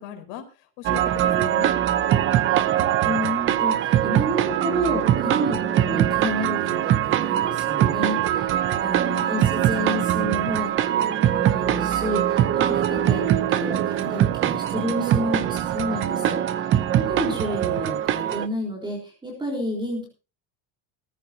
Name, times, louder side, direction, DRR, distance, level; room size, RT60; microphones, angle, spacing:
voice 1, 0.0-1.7 9.0-9.4, left 10 dB, 75° left, 7 dB, 4.3 m, -38 dB
sound 1, 0.8-18.5, right 11 dB, 25° right, 0.6 m, -22 dB
voice 2, 3.0-16.4 16.9-20.1, equal, 10° right, -1 dB, 3.8 m, -30 dB
18.0 x 14.5 x 2.7 m, 0.32 s
cardioid pair, 175°, 50 cm